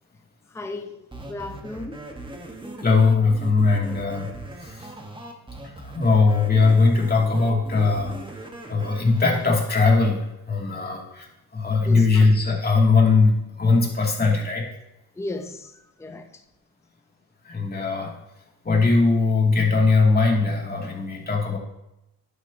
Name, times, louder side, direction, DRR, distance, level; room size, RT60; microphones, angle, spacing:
voice 1, 0.5-2.0 11.8-12.3 15.2-16.4, left 2 dB, 5° left, 0.7 m, -35 dB
sound 1, 1.1-9.5, right 1 dB, 15° right, 1.4 m, -39 dB
voice 2, 2.8-4.3 4.6-4.7 5.8-8.1 8.7-10.2 10.5-11.3 11.5-14.6 17.5-18.1 18.6-21.6, left 3 dB, 25° left, 2.6 m, -20 dB
11.5 x 6.6 x 2.9 m
supercardioid pair, 85°, 39 cm